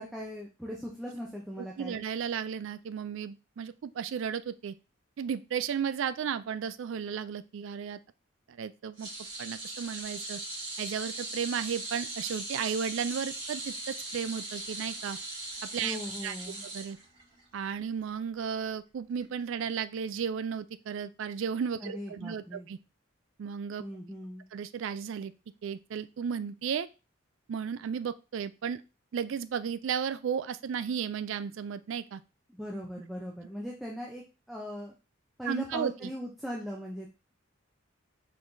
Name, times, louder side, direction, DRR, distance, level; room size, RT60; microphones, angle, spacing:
voice 1, 0.0-2.0 15.8-16.7 21.8-22.7 23.8-24.4 32.5-34.9 35.4-37.1, equal, ahead, -3 dB, 0.6 m, -39 dB
voice 2, 1.6-4.7 5.2-8.0 8.5-9.1 9.4-10.4 10.8-15.2 15.7-16.0 16.2-16.3 16.6-17.0 17.5-22.8 23.4-23.8 24.5-25.3 25.6-26.9 27.5-28.8 29.1-32.2 35.5-36.1, right 7 dB, 65° right, 13 dB, 0.3 m, -34 dB
sound 1, 9.0-17.4 17.8-18.0 19.2-19.3, right 2 dB, 25° right, 2.6 m, -39 dB
4.9 x 3.8 x 2.7 m, 0.30 s
head